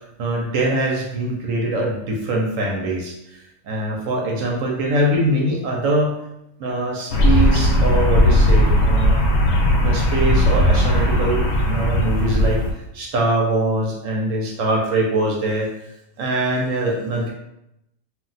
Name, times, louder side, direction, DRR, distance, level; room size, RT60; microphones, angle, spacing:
voice 1, 0.2-6.2 6.6-9.2 9.8-12.6 12.9-15.7 16.2-17.3, right 1 dB, 80° right, -1 dB, 1.0 m, -23 dB
sound 1, 7.1-12.7, left 1 dB, 65° left, 0.8 m, -17 dB
2.4 x 2.1 x 3.9 m, 0.84 s
omnidirectional pair, 1.4 m